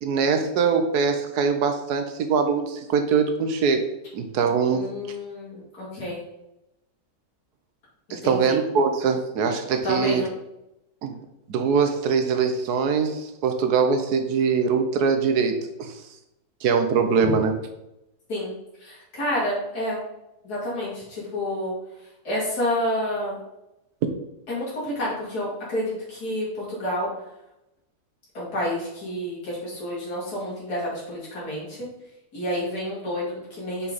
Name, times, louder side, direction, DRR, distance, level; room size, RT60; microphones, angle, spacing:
voice 1, 0.0-3.8 4.1-4.8 8.1-10.2 11.0-11.2 11.5-15.9 16.6-17.6, right 5 dB, 85° right, 7 dB, 1.3 m, -22 dB
voice 2, 4.7-6.2 8.1-8.6 9.8-10.3 17.2-17.3 18.3-18.5 18.8-20.0 20.4-21.7 22.2-23.4 24.5-27.1 28.3-31.9 32.3-33.9, left 1 dB, 80° left, -7 dB, 3.2 m, -29 dB
6.2 x 5.8 x 4.0 m, 0.89 s
omnidirectional pair, 1.6 m